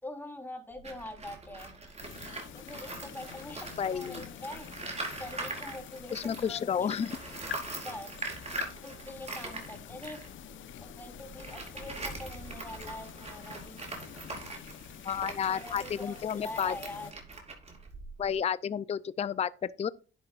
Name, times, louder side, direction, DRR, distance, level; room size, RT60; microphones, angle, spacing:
voice 1, 0.0-1.7 2.5-4.7 5.2-6.9 7.8-8.1 8.8-10.2 10.8-13.8 15.5-17.1, left 1 dB, 10° left, 3.7 m, -44 dB
Tools, 0.7-6.6 6.9-18.3, right 3 dB, 35° right, 4.8 m, -42 dB
sound 1, 2.0-17.1, left 11 dB, 75° left, 0.9 m, -47 dB
voice 2, 3.8-4.2 6.1-7.2 15.0-16.8 18.2-19.9, left 8 dB, 30° left, 0.5 m, -31 dB
11.5 x 9.8 x 2.5 m
cardioid pair, 90°, 20 cm